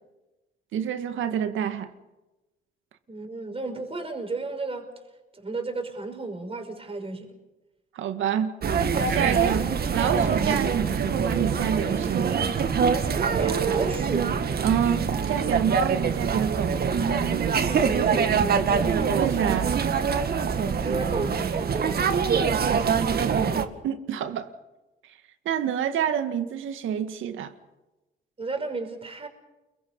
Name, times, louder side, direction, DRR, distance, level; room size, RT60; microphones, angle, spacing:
voice 1, 0.7-1.9 7.9-8.5 9.1-12.5 14.6-17.0 19.1-19.7 23.1-23.3 23.5-24.5 25.5-27.5, right 9 dB, 80° right, 2.0 m, -28 dB
voice 2, 3.1-4.9 5.3-7.4 13.2-14.4 17.7-18.7 20.8-22.5 28.4-29.3, right 3 dB, 30° right, 5.8 m, -33 dB
sound 1, 8.6-23.7, right 6 dB, 50° right, 2.0 m, -24 dB
29.5 x 23.0 x 5.6 m
cardioid pair, 90°, 20 cm